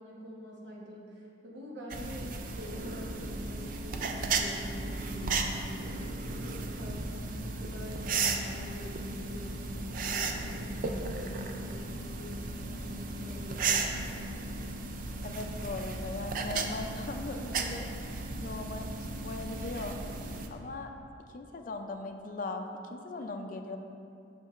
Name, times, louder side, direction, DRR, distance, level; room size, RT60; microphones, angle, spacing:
voice 1, 0.0-5.9 6.4-14.4 23.2-23.4, equal, 65° right, -3 dB, 1.1 m, -45 dB
sound 1, 1.9-20.5, right 3 dB, 45° right, 0.4 m, -35 dB
voice 2, 15.2-17.9 18.4-18.9 19.2-20.0 20.5-20.9 21.3-23.8, left 3 dB, 45° left, 5 dB, 0.4 m, -39 dB
8.0 x 5.8 x 2.4 m, 2.6 s
head